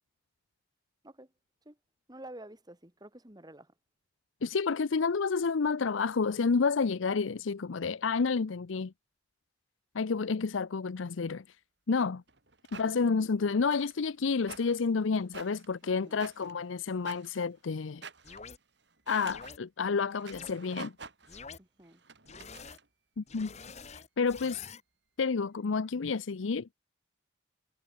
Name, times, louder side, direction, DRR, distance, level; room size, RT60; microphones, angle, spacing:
voice 1, 2.1-3.7 12.7-12.9 16.0-16.3 21.6-22.0, right 1 dB, 20° right, 2.7 m, -49 dB
voice 2, 4.4-8.9 9.9-11.6 11.9-12.2 12.7-18.0 19.1-20.9 23.2-23.5 23.9-24.7 25.2-26.7, left 5 dB, 85° left, 0.6 m, -30 dB
sound 1, 12.3-12.9 13.7-14.0 14.4-14.9 15.2-15.8 16.2-17.5 17.8-18.5 18.9-19.5 20.1-21.4 21.8-22.9, right 4 dB, 60° right, 4.2 m, -48 dB
sound 2, 18.2-18.6 19.3-19.6 20.3-20.5 21.3-21.6 22.3-22.8 23.3-24.8, left 5 dB, 35° left, 2.0 m, -47 dB
head